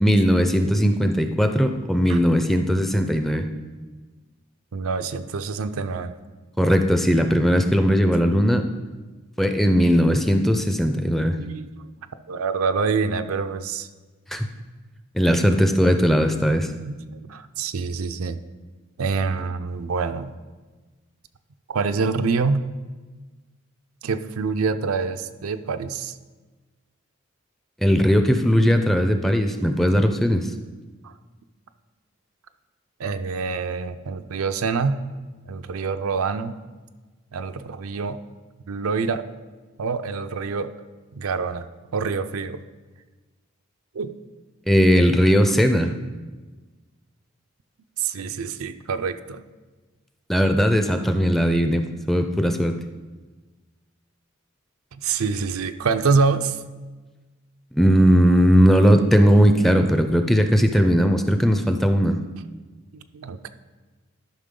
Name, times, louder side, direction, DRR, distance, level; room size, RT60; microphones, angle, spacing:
voice 1, 0.0-3.5 6.6-8.6 9.4-11.4 14.3-14.5 15.1-16.7 27.8-30.5 44.7-45.9 50.3-52.7 57.7-62.2, equal, ahead, 6 dB, 0.4 m, -18 dB
voice 2, 4.7-6.2 11.4-11.9 12.3-13.9 16.9-18.4 19.0-20.3 21.7-22.7 24.0-26.1 31.0-31.1 33.0-35.0 35.5-36.5 37.3-38.2 38.7-39.2 39.8-40.7 41.1-41.7 41.9-42.6 43.9-44.1 48.0-49.4 54.9-56.6 62.9-63.5, right 4 dB, 85° right, 9 dB, 0.5 m, -26 dB
12.0 x 5.7 x 3.8 m, 1.3 s
head